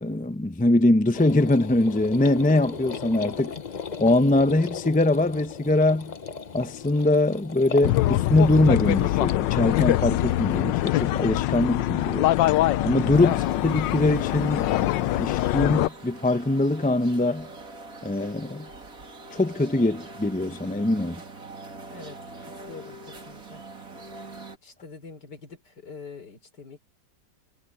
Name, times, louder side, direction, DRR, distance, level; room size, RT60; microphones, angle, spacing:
voice 1, 0.0-3.5 4.0-6.1 6.5-12.3 12.8-14.7 15.0-17.5 18.0-18.7 19.3-21.2, left 2 dB, 10° left, 0.4 m, -22 dB
sound 1, 1.1-15.2, left 5 dB, 35° left, 0.7 m, -39 dB
sound 2, 7.8-15.9, left 15 dB, 80° left, 1.3 m, -23 dB
sound 3, 13.1-24.6, right 2 dB, 50° right, 3.3 m, -44 dB
voice 2, 22.7-23.6 24.6-26.8, left 4 dB, 65° left, 4.7 m, -44 dB
omnidirectional pair, 1.9 m